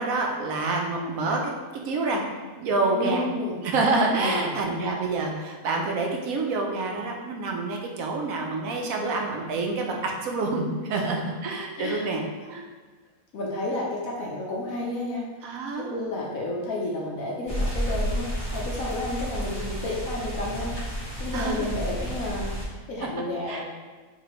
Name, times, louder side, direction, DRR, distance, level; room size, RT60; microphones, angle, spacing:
voice 1, 0.0-1.5 1.9-2.2 2.6-3.3 3.6-12.6 15.4-16.0 21.3-21.6 23.5-23.6, right 3 dB, 75° right, 1 dB, 1.1 m, -27 dB
voice 2, 2.9-3.5 4.2-4.6 10.9-11.0 11.7-12.1 13.3-15.2 15.8-20.7 21.2-23.6, left 2 dB, 70° left, -4 dB, 1.2 m, -31 dB
sound 1, 17.5-22.7, equal, 20° right, 1.2 m, -31 dB
4.7 x 3.4 x 3.0 m, 1.3 s
omnidirectional pair, 1.5 m